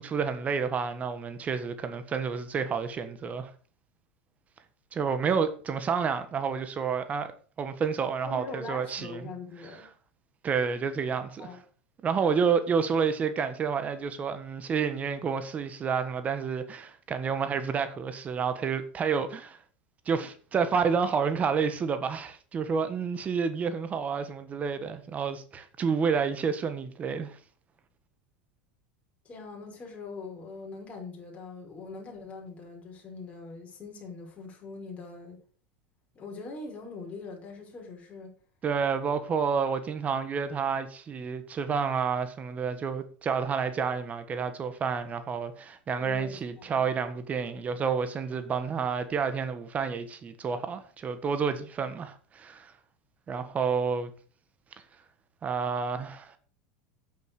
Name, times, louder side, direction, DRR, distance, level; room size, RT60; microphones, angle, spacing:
voice 1, 0.0-3.5 4.9-7.3 7.6-9.2 10.4-11.5 12.0-19.6 20.0-27.4 38.6-52.7 53.3-54.1 55.4-56.4, right 6 dB, 30° right, 1.4 m, -29 dB
voice 2, 8.2-9.9 11.4-11.6 29.2-35.4 36.1-38.4 45.9-46.8, left 3 dB, 25° left, 5.4 m, -42 dB
8.4 x 7.9 x 6.5 m
hypercardioid pair, 100°, 5 cm